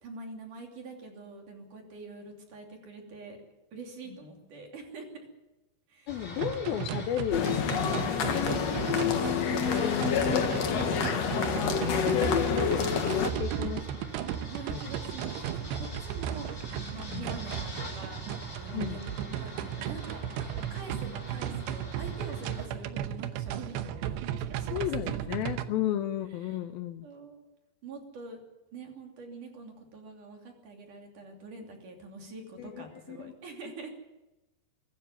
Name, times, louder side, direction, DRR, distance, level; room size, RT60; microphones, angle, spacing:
voice 1, 0.0-3.4 3.7-5.3 5.9-6.1 10.3-10.7 11.1-11.3 14.4-16.5 16.9-19.1 19.4-20.2 20.7-25.3 26.4-26.6 27.0-27.4 27.8-28.4 28.7-33.9, right 3 dB, 50° right, 2 dB, 4.2 m, -45 dB
voice 2, 6.1-8.6 9.5-11.1 11.7-14.1 14.7-14.8 17.1-17.4 18.7-19.0 24.7-27.1 32.6-33.3, left 11 dB, 75° left, 8 dB, 2.4 m, -34 dB
sound 1, 6.1-22.7, right 1 dB, 20° left, 6.0 m, -43 dB
sound 2, 6.4-25.6, right 10 dB, 85° right, 3.1 m, -36 dB
sound 3, 7.3-13.3, left 7 dB, 55° left, 1.9 m, -28 dB
23.5 x 13.0 x 9.4 m, 1.0 s
omnidirectional pair, 4.9 m